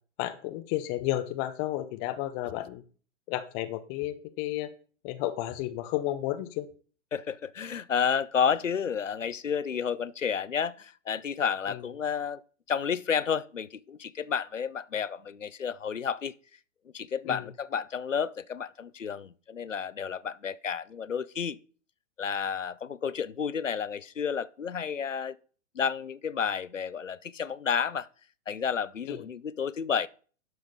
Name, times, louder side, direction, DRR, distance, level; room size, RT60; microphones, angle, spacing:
voice 1, 0.2-2.8 3.3-4.7 5.0-6.7 11.7-11.8 17.2-17.5 29.1-29.3, left 14 dB, 15° left, 0.4 m, -32 dB
voice 2, 7.1-12.4 12.7-16.3 16.9-21.6 22.2-25.4 25.7-28.1 28.5-30.1, left 7 dB, 80° left, 0.7 m, -31 dB
11.5 x 4.6 x 5.4 m
figure-of-eight pair, 110°, 37 cm